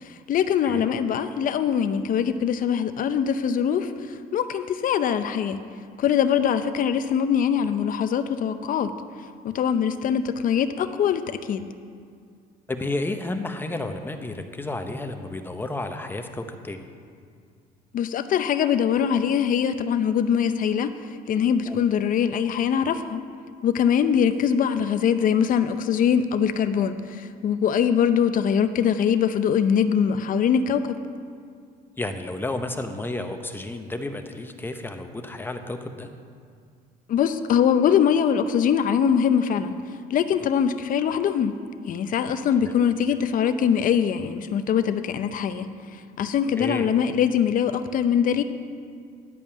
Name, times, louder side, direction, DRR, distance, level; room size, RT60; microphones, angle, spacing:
voice 1, 0.3-3.9 4.3-5.6 6.0-8.9 9.4-11.7 17.9-20.9 21.3-23.2 23.6-31.0 37.1-39.7 40.1-41.5 41.9-45.7 46.2-48.4, left 8 dB, 55° left, 10 dB, 0.7 m, -22 dB
voice 2, 12.7-16.9 21.7-21.8 32.0-36.1 42.6-42.8 46.6-46.9, left 2 dB, 10° left, 6 dB, 0.8 m, -31 dB
11.0 x 5.4 x 8.6 m, 2.2 s
cardioid pair, 110°, 17 cm